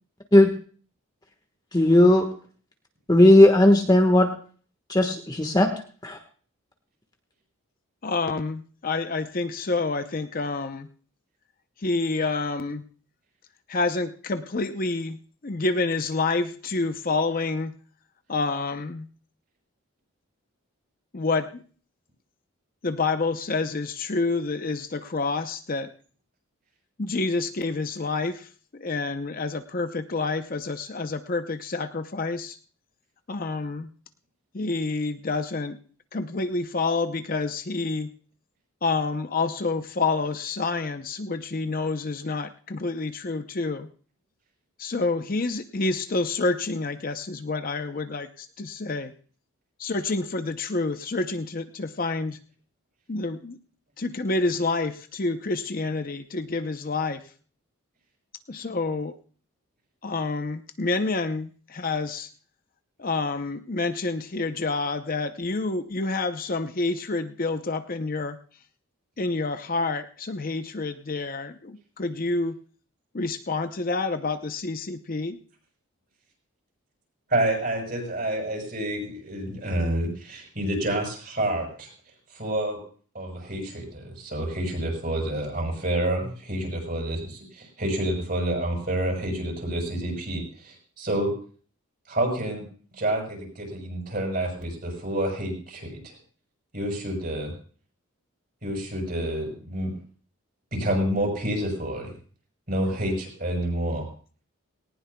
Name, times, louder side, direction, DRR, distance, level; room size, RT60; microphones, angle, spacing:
voice 1, 1.7-2.3 3.1-4.3 4.9-5.7 6.0-6.2, left 1 dB, 20° left, 3 dB, 1.3 m, -16 dB
voice 2, 8.0-10.9 11.8-12.8 13.7-15.2 15.4-17.7 18.3-19.1 21.1-21.6 22.8-25.9 27.0-32.6 33.3-33.9 34.5-35.8 36.1-38.1 38.8-43.9 44.8-49.1 49.8-52.4 53.1-53.6 54.0-57.2 58.5-59.1 60.0-62.3 63.0-68.4 69.2-72.6 73.1-75.4, left 3 dB, 40° left, 9 dB, 0.6 m, -28 dB
voice 3, 77.3-81.9 82.3-82.8 83.1-91.3 92.1-92.6 93.0-96.1 96.7-97.5 98.6-99.9 100.7-102.1 102.7-104.0, right 1 dB, 40° right, 1 dB, 6.4 m, -28 dB
19.0 x 18.5 x 2.2 m, 0.43 s
head